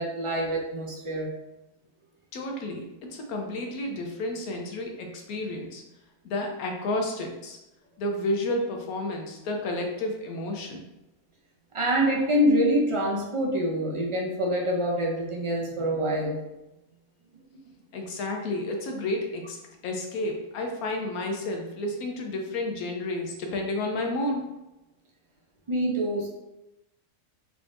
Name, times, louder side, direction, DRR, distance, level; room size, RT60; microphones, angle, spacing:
voice 1, 0.0-1.3 11.7-16.4 25.7-26.3, equal, 55° right, -2 dB, 0.3 m, -25 dB
voice 2, 2.3-5.8 6.2-7.6 8.0-10.9 17.9-19.6 19.8-24.5, left 1 dB, 90° left, 2 dB, 1.2 m, -31 dB
3.7 x 3.5 x 2.5 m, 0.96 s
omnidirectional pair, 1.5 m